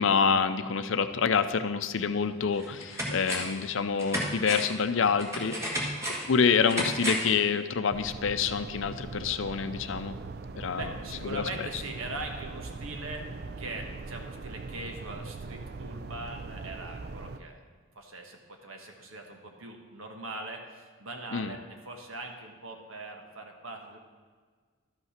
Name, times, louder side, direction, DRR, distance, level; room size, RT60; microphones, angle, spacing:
voice 1, 0.0-5.5 6.3-10.2 10.6-10.9 11.2-11.4 21.3-21.5, left 6 dB, 70° left, 10 dB, 0.5 m, -27 dB
sound 1, 2.0-2.1 2.5-3.6 4.0-7.4 7.7-7.8, equal, 15° right, 1.4 m, -33 dB
sound 2, 7.9-17.4, right 3 dB, 50° right, 0.4 m, -41 dB
voice 2, 10.7-13.3 13.6-17.6 17.9-24.0, right 2 dB, 85° right, 3 dB, 1.4 m, -41 dB
12.0 x 5.6 x 5.9 m, 1.5 s
head